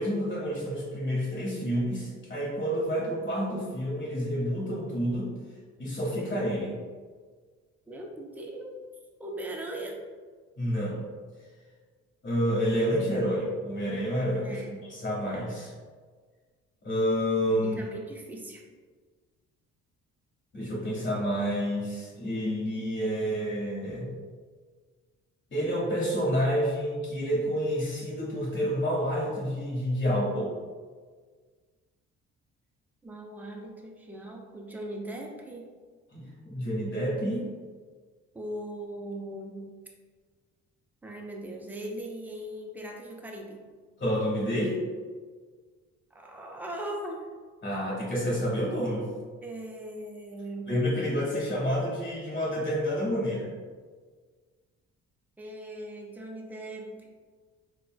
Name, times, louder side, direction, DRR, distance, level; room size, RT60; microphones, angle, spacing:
voice 1, 0.0-5.3 5.8-6.8 10.6-11.0 12.2-14.6 14.9-15.7 16.8-17.8 20.5-24.1 25.5-30.5 36.1-37.5 44.0-44.8 47.6-49.1 50.7-53.5, equal, 40° left, -5 dB, 1.3 m, -29 dB
voice 2, 7.9-8.7 9.2-10.0 14.4-14.8 15.2-15.3 17.6-18.6 33.0-35.6 38.3-39.7 41.0-43.6 46.1-47.3 49.4-50.7 55.4-57.1, right 1 dB, 5° right, 0 dB, 0.4 m, -39 dB
4.0 x 2.1 x 2.2 m, 1.5 s
cardioid pair, 90°, 30 cm